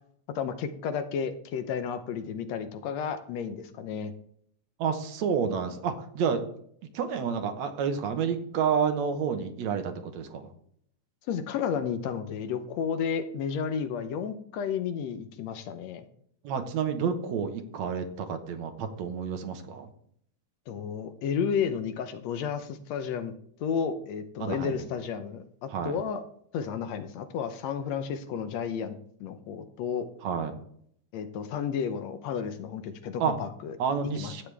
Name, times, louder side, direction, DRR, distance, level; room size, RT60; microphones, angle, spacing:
voice 1, 0.4-4.1 11.3-16.1 20.7-23.3 23.6-26.2 26.5-30.1 31.1-33.8 34.2-34.3, left 7 dB, 75° left, 9 dB, 1.9 m, -32 dB
voice 2, 4.8-6.4 6.9-10.5 16.4-19.9 24.4-24.8 25.7-26.0 30.2-30.6 33.2-33.3 33.8-34.4, right 6 dB, 70° right, 7 dB, 2.3 m, -29 dB
13.0 x 9.2 x 3.4 m, 0.66 s
omnidirectional pair, 3.3 m